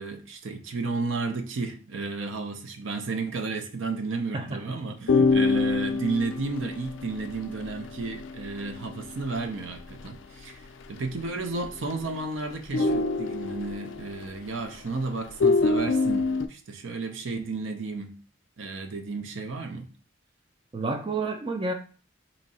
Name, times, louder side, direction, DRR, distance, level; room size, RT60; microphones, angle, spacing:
voice 1, 0.0-10.6 10.9-18.2 18.6-19.9, right 3 dB, 75° right, 0.6 m, -33 dB
voice 2, 4.3-5.3 20.7-21.7, right 3 dB, 25° right, 0.3 m, -31 dB
sound 1, 5.1-10.1 10.4-10.5 10.8-11.2 11.6-12.2 12.5-14.9 15.3-16.5, left 3 dB, 70° left, 0.3 m, -26 dB
2.9 x 2.6 x 4.1 m
head